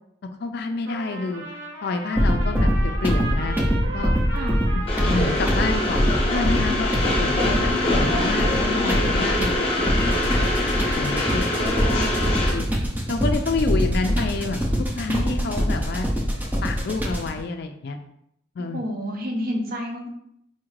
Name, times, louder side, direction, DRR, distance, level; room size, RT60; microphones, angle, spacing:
voice 1, 0.4-1.4 1.8-3.6 3.9-4.1 5.0-10.1 10.9-11.5 11.8-11.9 12.5-12.7 13.1-16.1 16.6-18.0 18.6-18.8, left 3 dB, 55° left, 7 dB, 0.3 m, -28 dB
Trumpet, 0.8-8.0, right 2 dB, 85° right, 0.9 m, -36 dB
sound 1, 2.1-17.4, equal, 10° right, 0.4 m, -24 dB
voice 2, 4.3-4.6 18.7-20.1, equal, 50° right, 1 dB, 0.6 m, -31 dB
Train, 4.9-12.5, left 1 dB, 30° left, 0.7 m, -24 dB
4.3 x 2.4 x 3.1 m, 0.74 s
head